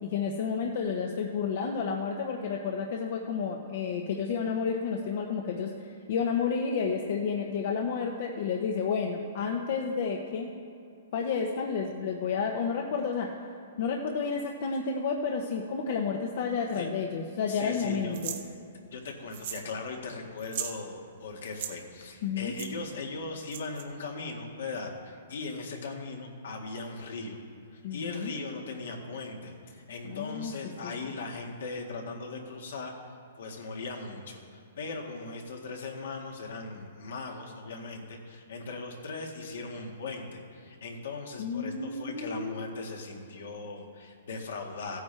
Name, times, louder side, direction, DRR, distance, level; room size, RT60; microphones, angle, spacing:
voice 1, 0.0-5.7 6.1-10.5 11.1-13.3 13.8-18.4 22.2-22.6 27.8-28.4 30.1-30.5 30.8-30.9 41.4-42.8, left 5 dB, 55° left, 2 dB, 1.0 m, -31 dB
voice 2, 17.5-18.2 18.9-27.4 27.7-32.9 33.4-45.0, left 3 dB, 75° left, 1 dB, 1.8 m, -39 dB
sound 1, 18.1-18.4 19.3-19.7 20.0-20.1 20.4-20.8 21.4-21.7 22.6-22.7 23.5-23.8, right 9 dB, 55° right, 1.1 m, -37 dB
15.0 x 9.3 x 3.4 m, 2.6 s
hypercardioid pair, 150°, 0 cm